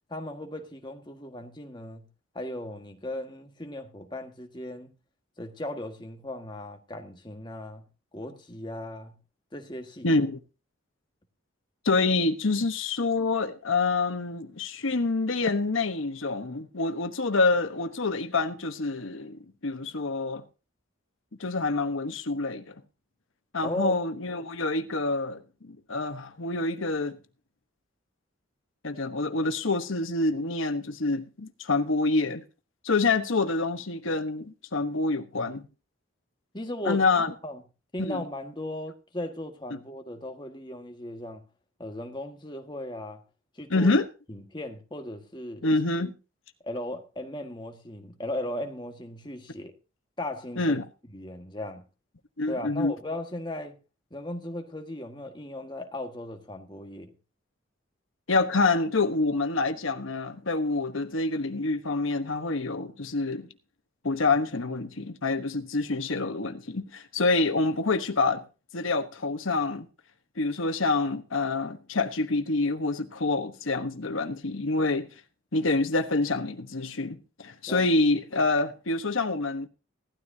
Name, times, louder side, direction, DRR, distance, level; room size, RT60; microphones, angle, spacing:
voice 1, 0.1-2.1 2.3-4.9 5.4-7.8 8.1-9.2 9.5-10.1 23.6-23.9 36.5-37.0 37.4-37.6 37.9-41.4 41.8-43.2 43.5-43.9 44.3-45.6 46.6-49.7 50.2-50.8 51.1-51.8 52.5-53.8 54.1-57.1 77.7-77.9, left 1 dB, 20° left, 1.6 m, -37 dB
voice 2, 10.0-10.4 11.8-20.4 21.4-22.7 23.5-27.2 28.8-32.4 32.8-35.6 36.8-37.3 38.0-38.2 43.7-44.1 45.6-46.1 50.6-50.8 52.4-52.9 58.3-63.5 64.0-68.4 68.7-69.9 70.4-75.1 75.5-79.7, left 3 dB, 80° left, 1.1 m, -27 dB
17.0 x 13.0 x 2.8 m
head